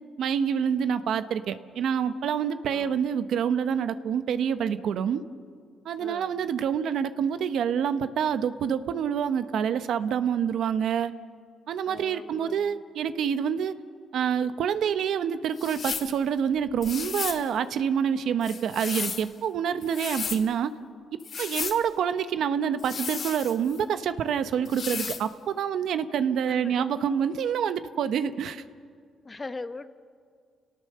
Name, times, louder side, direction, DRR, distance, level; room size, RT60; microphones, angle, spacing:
voice 1, 0.2-5.2 5.8-11.1 11.7-13.8 14.1-20.7 21.4-28.6, right 8 dB, 70° right, 11 dB, 1.0 m, -27 dB
voice 2, 2.7-3.0 6.0-6.4 11.9-12.8 26.5-26.9 29.2-29.9, left 3 dB, 25° left, 11 dB, 1.1 m, -40 dB
sound 1, 15.6-16.1 16.8-17.4 18.4-19.3 19.8-20.4 21.2-21.8 22.8-23.8 24.6-25.2, left 6 dB, 50° left, 1.9 m, -34 dB
30.0 x 18.0 x 6.8 m, 2.1 s
cardioid pair, 90°, 0 cm